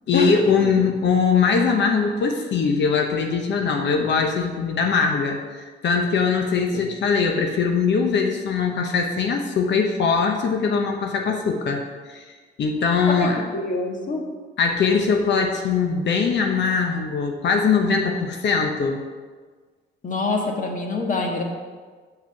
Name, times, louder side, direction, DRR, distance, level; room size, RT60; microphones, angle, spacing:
voice 1, 0.1-11.8 12.1-13.4 14.6-19.0, left 5 dB, 65° left, 3 dB, 0.9 m, -21 dB
voice 2, 13.1-14.2 20.0-21.4, left 2 dB, 40° left, 1 dB, 1.6 m, -25 dB
6.0 x 5.9 x 5.8 m, 1.5 s
cardioid pair, 90°, 20 cm